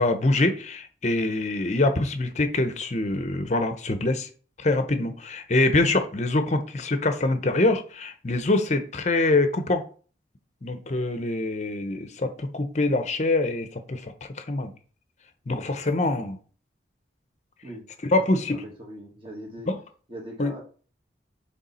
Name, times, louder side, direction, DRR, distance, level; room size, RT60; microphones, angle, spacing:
voice 1, 0.0-4.3 4.6-9.8 10.6-14.7 15.5-16.4 18.1-18.6 19.7-19.8 20.4-20.5, left 2 dB, 40° left, 9 dB, 0.7 m, -24 dB
voice 2, 15.5-15.9 17.6-19.7 20.1-20.6, equal, 30° right, -1 dB, 1.7 m, -42 dB
6.4 x 3.7 x 4.2 m, 0.41 s
head